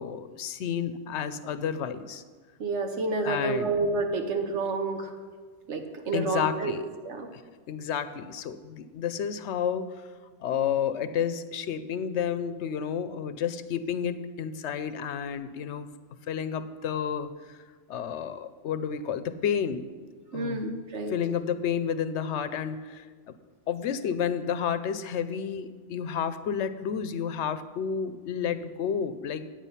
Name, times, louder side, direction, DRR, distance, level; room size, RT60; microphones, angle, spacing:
voice 1, 0.0-2.2 3.2-3.7 6.1-6.8 7.3-7.4 7.7-10.1 10.4-15.9 16.3-17.6 17.9-19.8 20.3-20.6 21.1-23.4 23.7-29.4, left 8 dB, 80° left, 12 dB, 0.9 m, -31 dB
voice 2, 2.6-5.1 5.7-6.7 7.0-7.3 20.3-21.1, right 3 dB, 80° right, 5 dB, 1.4 m, -29 dB
9.1 x 8.8 x 5.6 m, 1.5 s
omnidirectional pair, 1.2 m